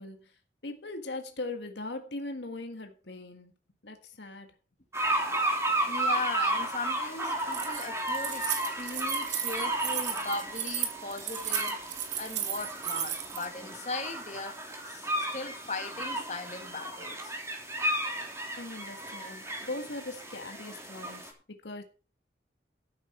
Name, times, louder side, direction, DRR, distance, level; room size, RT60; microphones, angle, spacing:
voice 1, 0.0-3.5 3.8-4.5 18.6-21.8, left 2 dB, 75° left, 1.8 m, -40 dB
sound 1, 4.9-21.3, right 1 dB, 15° right, 3.1 m, -33 dB
voice 2, 5.8-11.8 12.2-14.6 14.9-17.3, left 3 dB, 40° left, 2.1 m, -38 dB
Keys jangling, 7.4-13.5, right 10 dB, 85° right, 2.4 m, -34 dB
13.0 x 9.2 x 4.5 m
head